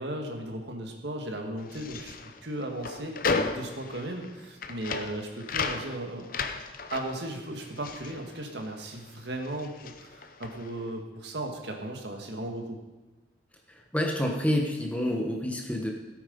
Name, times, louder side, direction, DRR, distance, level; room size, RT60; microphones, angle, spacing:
voice 1, 0.0-6.4 6.9-12.8, right 1 dB, 70° right, 3 dB, 2.0 m, -36 dB
sound 1, 1.6-9.1 9.3-10.8, left 4 dB, 50° left, 0.8 m, -35 dB
voice 2, 13.7-15.9, left 1 dB, 10° left, 1 dB, 1.4 m, -28 dB
16.5 x 8.7 x 5.4 m, 1.1 s
head